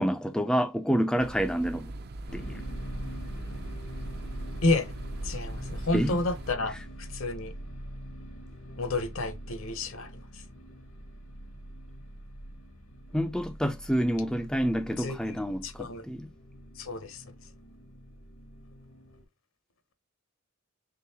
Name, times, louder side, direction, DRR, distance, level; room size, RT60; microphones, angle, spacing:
voice 1, 0.0-1.9 2.3-2.6 5.9-6.2 13.1-16.3, equal, 5° left, 0.3 m, -28 dB
sound 1, 1.2-6.5, right 2 dB, 50° right, 0.5 m, -41 dB
sound 2, 2.3-19.2, equal, 90° left, 1.5 m, -43 dB
voice 2, 4.6-4.9 5.2-7.5 8.8-10.4 15.0-15.4 15.6-16.0 16.8-17.2, left 2 dB, 65° left, 0.8 m, -31 dB
3.8 x 3.7 x 2.7 m
head